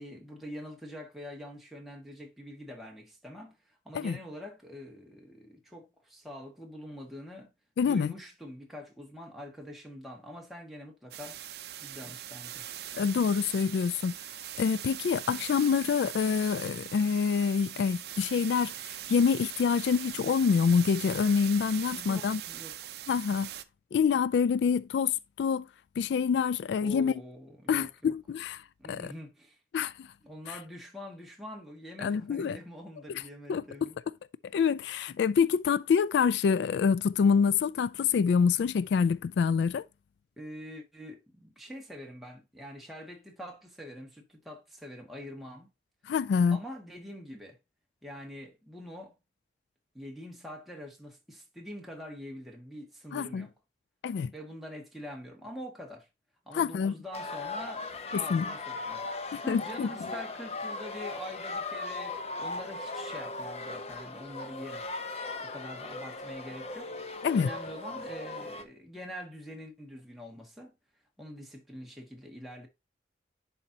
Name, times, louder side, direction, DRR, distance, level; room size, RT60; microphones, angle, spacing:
voice 1, 0.0-7.5 7.8-11.4 11.8-12.7 21.9-22.9 26.8-28.1 28.8-29.6 30.2-34.0 40.4-45.7 46.5-47.6 48.0-49.2 49.9-53.5 54.3-56.1 56.4-59.1 59.4-64.8 65.4-66.9 67.3-70.7 71.2-72.7, equal, ahead, 1.6 m, -45 dB
voice 2, 7.8-8.1 12.9-14.1 14.6-22.4 23.1-23.5 23.9-25.7 26.0-27.1 27.7-28.6 28.9-29.1 29.7-30.1 30.5-30.6 32.0-32.6 33.1-33.2 33.5-33.9 34.5-39.8 46.1-46.6 53.1-53.5 54.0-54.3 56.5-56.9 58.1-58.5 59.3-59.9 67.2-67.5, left 6 dB, 75° left, 0.3 m, -26 dB
sound 1, 11.1-23.6, right 12 dB, 60° right, 0.6 m, -41 dB
sound 2, 57.1-68.6, left 3 dB, 35° left, 0.8 m, -38 dB
10.5 x 4.4 x 2.8 m
head